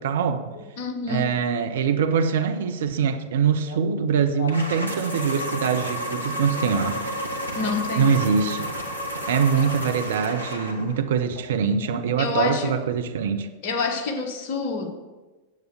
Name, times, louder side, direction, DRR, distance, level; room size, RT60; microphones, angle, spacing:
voice 1, 0.0-0.6 1.1-7.0 7.9-8.7 9.3-13.5, right 6 dB, 60° right, 8 dB, 0.8 m, -23 dB
voice 2, 0.5-1.3 3.7-3.8 4.4-4.5 7.5-8.1 9.6-9.7 12.2-12.7 13.6-15.0, left 4 dB, 45° left, 4 dB, 1.5 m, -28 dB
sound 1, 4.5-11.0, equal, 90° right, 1.3 m, -31 dB
9.5 x 7.9 x 6.5 m, 1.2 s
figure-of-eight pair, 90°, 0 cm